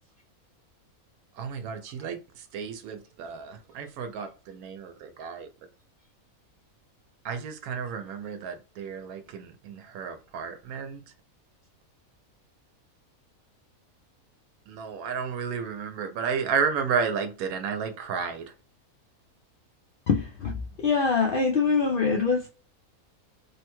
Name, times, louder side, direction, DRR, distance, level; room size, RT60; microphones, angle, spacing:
voice 1, 1.3-5.5 7.2-11.0 14.7-18.5, right 6 dB, 85° right, 1.1 m, -32 dB
voice 2, 20.1-22.5, left 5 dB, 85° left, 0.4 m, -24 dB
3.2 x 2.2 x 2.9 m
omnidirectional pair, 1.5 m